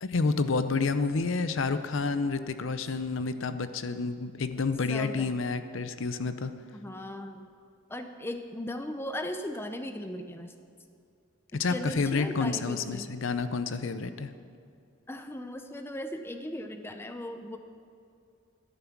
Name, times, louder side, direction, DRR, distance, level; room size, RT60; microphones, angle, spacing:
voice 1, 0.0-6.5 11.5-14.3, left 4 dB, 60° left, 11 dB, 0.6 m, -29 dB
voice 2, 4.9-5.3 6.7-7.5 7.9-10.5 11.7-13.1 15.1-17.6, left 1 dB, 10° left, 7 dB, 0.5 m, -38 dB
12.5 x 11.0 x 6.0 m, 2.4 s
head